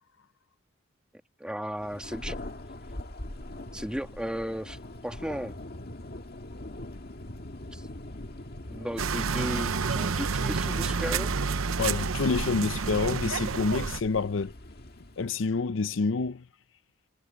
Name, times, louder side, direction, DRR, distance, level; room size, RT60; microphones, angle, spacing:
voice 1, 1.4-2.4 3.7-5.6 7.7-7.9 8.7-11.3, equal, 5° right, 1.8 m, -35 dB
Thunder, 1.8-15.4, left 1 dB, 50° left, 1.9 m, -43 dB
sound 1, 9.0-14.0, right 5 dB, 85° right, 0.8 m, -29 dB
voice 2, 11.8-14.5 15.2-16.4, left 4 dB, 65° left, 0.6 m, -28 dB
head